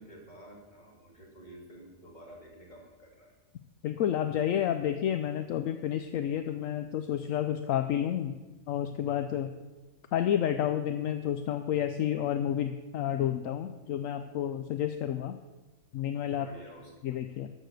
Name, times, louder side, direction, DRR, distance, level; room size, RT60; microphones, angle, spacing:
voice 1, 0.0-3.3 16.3-16.9, right 1 dB, 30° left, -1 dB, 2.7 m, -51 dB
voice 2, 3.8-8.4 8.7-9.5 10.1-15.4 15.9-16.5 17.0-17.5, left 10 dB, 75° left, 9 dB, 1.0 m, -30 dB
13.0 x 6.6 x 6.6 m, 1.2 s
omnidirectional pair, 1.4 m